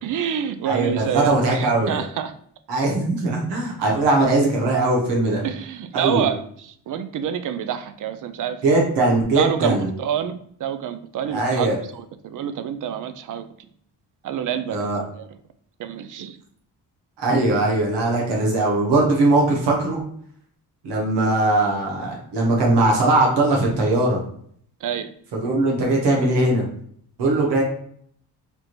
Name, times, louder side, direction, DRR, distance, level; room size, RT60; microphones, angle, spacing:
voice 1, 0.0-2.3 5.4-8.6 9.3-13.5 14.2-15.3 15.8-16.4 24.8-25.1, right 9 dB, 55° right, 10 dB, 0.4 m, -28 dB
voice 2, 0.7-2.0 2.7-5.4 5.9-6.3 8.6-9.9 11.3-11.8 14.7-15.0 17.2-20.0 20.8-24.2 25.3-26.7 27.2-27.6, right 2 dB, 85° right, -1 dB, 1.1 m, -20 dB
3.5 x 2.5 x 2.9 m, 0.63 s
cardioid pair, 75°, 40 cm